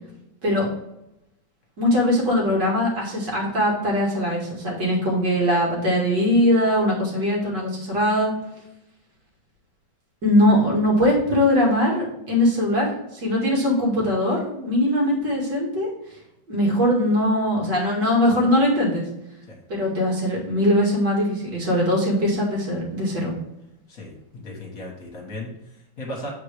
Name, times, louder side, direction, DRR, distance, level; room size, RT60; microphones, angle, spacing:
voice 1, 1.8-8.3 10.2-15.9 16.5-19.1 19.7-23.3, left 1 dB, 60° right, -3 dB, 2.7 m, -21 dB
voice 2, 23.9-26.3, left 1 dB, 50° left, -1 dB, 1.9 m, -36 dB
7.8 x 4.5 x 3.3 m, 0.85 s
omnidirectional pair, 2.2 m